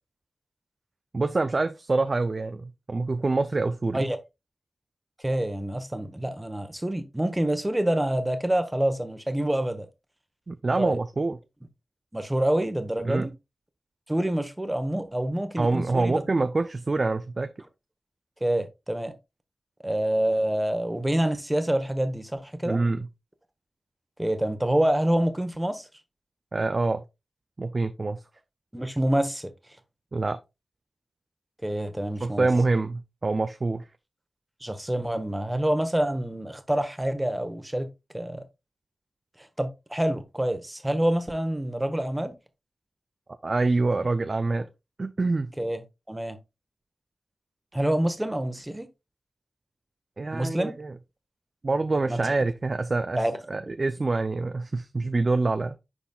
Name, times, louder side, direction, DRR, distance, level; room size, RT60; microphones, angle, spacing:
voice 1, 1.1-4.1 10.5-11.4 13.0-13.3 15.6-17.5 22.7-23.1 26.5-27.0 27.6-28.2 30.1-30.4 32.2-33.8 43.4-44.7 45.0-45.5 50.2-50.9 51.6-53.2 53.5-55.8, right 3 dB, 50° right, 0.4 m, -26 dB
voice 2, 5.2-9.9 10.8-11.0 12.1-13.3 14.1-16.2 18.4-19.1 19.8-22.8 24.2-25.9 28.7-29.5 31.6-32.5 34.6-37.9 38.1-38.4 39.6-42.3 45.6-45.8 46.1-46.4 47.7-48.9 50.3-50.7 52.1-52.2 53.2-53.4 53.7-53.8, right 1 dB, 15° right, 1.1 m, -27 dB
10.5 x 4.0 x 2.3 m
cardioid pair, 45°, 0 cm